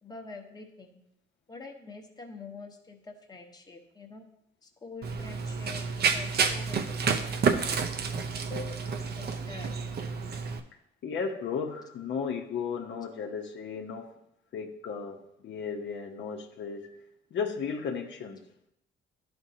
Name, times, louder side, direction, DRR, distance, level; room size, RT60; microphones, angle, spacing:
voice 1, 0.0-1.0 1.5-4.3 4.6-7.8 8.4-9.7, left 3 dB, 20° left, 1 dB, 1.0 m, -46 dB
Run, 5.0-10.6, right 5 dB, 55° right, 0.7 m, -29 dB
voice 2, 11.0-14.1 14.5-16.9 17.3-18.4, left 6 dB, 65° left, 1 dB, 0.9 m, -35 dB
11.0 x 4.4 x 2.8 m, 0.81 s
cardioid pair, 90°, 20 cm